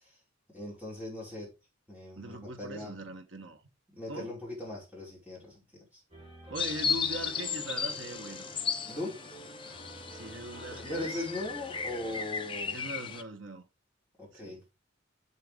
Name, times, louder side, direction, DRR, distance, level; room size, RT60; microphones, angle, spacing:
voice 1, 0.5-1.5 1.9-3.0 4.0-6.0 8.9-9.2 10.7-12.8 14.2-14.6, left 2 dB, 10° right, 5.4 m, -39 dB
voice 2, 2.2-3.6 4.1-4.3 6.5-8.4 10.1-11.2 12.7-13.6 14.3-14.6, right 2 dB, 65° right, 1.4 m, -41 dB
sound 1, 6.1-12.2, right 1 dB, 30° right, 4.3 m, -49 dB
sound 2, 6.6-13.2, left 6 dB, 25° left, 0.7 m, -35 dB
7.9 x 7.6 x 3.6 m
head